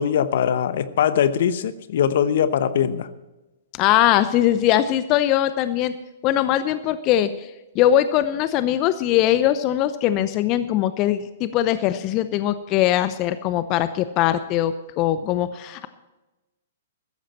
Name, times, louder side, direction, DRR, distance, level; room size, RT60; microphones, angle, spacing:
voice 1, 0.0-3.1, left 9 dB, 60° left, 13 dB, 0.9 m, -21 dB
voice 2, 3.7-5.9 6.2-15.9, left 12 dB, 35° left, 12 dB, 0.7 m, -21 dB
15.5 x 13.5 x 4.3 m, 1.1 s
figure-of-eight pair, 115°, 0 cm